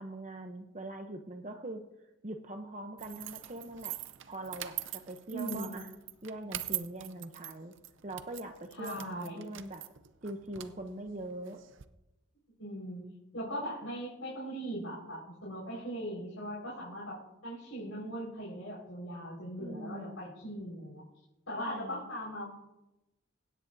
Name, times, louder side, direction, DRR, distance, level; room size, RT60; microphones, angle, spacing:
voice 1, 0.0-1.8 2.2-4.0 4.3-5.9 6.2-7.7 8.0-9.8 10.2-11.6 19.6-20.2 21.5-22.1, right 1 dB, 35° right, 5 dB, 0.7 m, -42 dB
sound 1, 3.0-11.8, right 14 dB, 70° right, 0.6 m, -43 dB
voice 2, 5.3-5.8 8.8-9.5 12.6-13.1 13.3-21.0 21.5-22.5, equal, 85° left, -7 dB, 4.9 m, -39 dB
24.5 x 10.0 x 2.7 m, 0.96 s
head